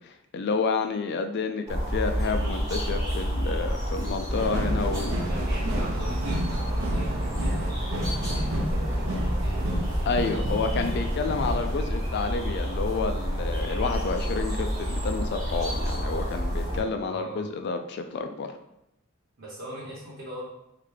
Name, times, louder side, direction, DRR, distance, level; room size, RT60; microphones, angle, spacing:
voice 1, 0.0-5.2 10.1-18.6, left 4 dB, 50° left, 7 dB, 0.3 m, -30 dB
sound 1, 1.7-16.8, equal, 15° right, 1.0 m, -29 dB
sound 2, 4.3-11.8, right 1 dB, 85° right, 0.7 m, -33 dB
voice 2, 5.1-9.7 17.0-17.4 19.4-20.4, right 1 dB, 65° right, -9 dB, 1.0 m, -41 dB
3.8 x 2.2 x 3.2 m, 0.83 s
head